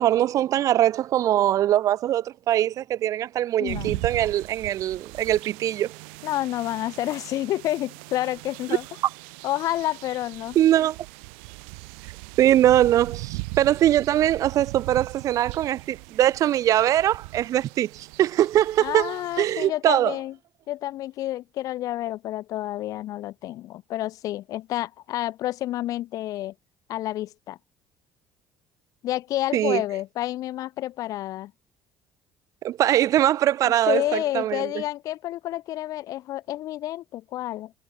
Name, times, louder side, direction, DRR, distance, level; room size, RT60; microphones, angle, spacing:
voice 1, 0.0-5.9 8.7-8.8 10.5-11.0 12.4-20.2 29.5-29.8 32.6-34.7, right 12 dB, 60° right, 0.9 m, -22 dB
voice 2, 3.6-4.0 6.2-8.8 9.4-10.6 18.8-20.3 20.7-26.5 26.9-27.6 29.0-31.5 33.9-37.7, left 14 dB, 65° left, 0.9 m, -29 dB
sound 1, 3.7-19.7, right 37 dB, 85° right, 1.8 m, -39 dB
supercardioid pair, 70°, 6 cm